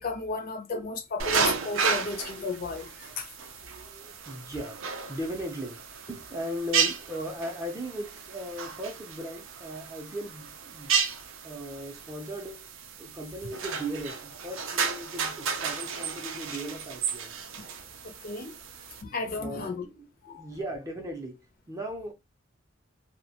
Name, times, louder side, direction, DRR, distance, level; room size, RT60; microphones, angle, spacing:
voice 1, 0.0-3.3 18.0-18.5 19.0-19.9 20.2-20.5, left 3 dB, 50° left, 0.5 m, -34 dB
sound 1, 1.2-19.0, right 6 dB, 85° right, 0.4 m, -33 dB
voice 2, 3.6-4.8 5.1-11.0 11.4-12.7 13.0-17.3 19.3-22.1, equal, 15° right, 0.5 m, -38 dB
2.2 x 2.1 x 2.8 m
head